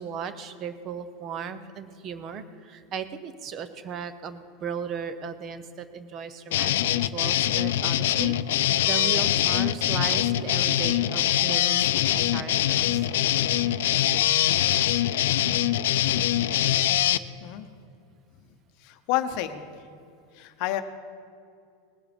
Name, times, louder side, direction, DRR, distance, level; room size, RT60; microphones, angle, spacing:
voice 1, 0.0-11.9 12.1-13.1, right 7 dB, 25° right, 12 dB, 0.6 m, -36 dB
sound 1, 6.5-17.2, left 12 dB, 85° left, 0.4 m, -23 dB
voice 2, 18.8-19.6 20.4-20.8, left 13 dB, 45° left, 9 dB, 0.8 m, -29 dB
19.5 x 7.3 x 5.3 m, 2.4 s
supercardioid pair, 170°, 0 cm